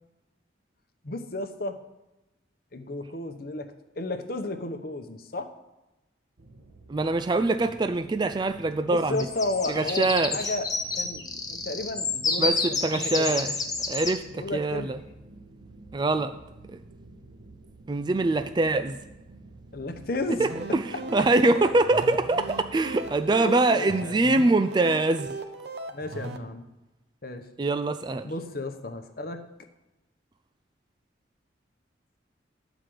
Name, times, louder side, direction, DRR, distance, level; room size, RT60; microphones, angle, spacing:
voice 1, 1.0-1.8 2.7-3.7 4.0-5.5 8.9-10.7 10.9-13.3 14.3-14.9 19.7-20.4 23.3-24.2 25.9-26.6 27.2-27.4 28.2-29.4, left 2 dB, 50° left, 7 dB, 0.9 m, -33 dB
sound 1, 6.4-23.4, right 2 dB, 85° right, 1.1 m, -50 dB
voice 2, 6.9-9.2 9.7-10.5 12.4-12.6 12.8-13.5 13.9-15.0 15.9-16.3 17.9-19.0 20.4-20.8 21.1-25.3 27.6-28.3, right 2 dB, 25° right, 9 dB, 0.3 m, -24 dB
sound 2, 9.2-14.1, left 3 dB, 20° left, 0.9 m, -29 dB
sound 3, 20.3-26.4, right 2 dB, 60° right, 0.8 m, -38 dB
11.5 x 5.0 x 7.7 m, 1.0 s
head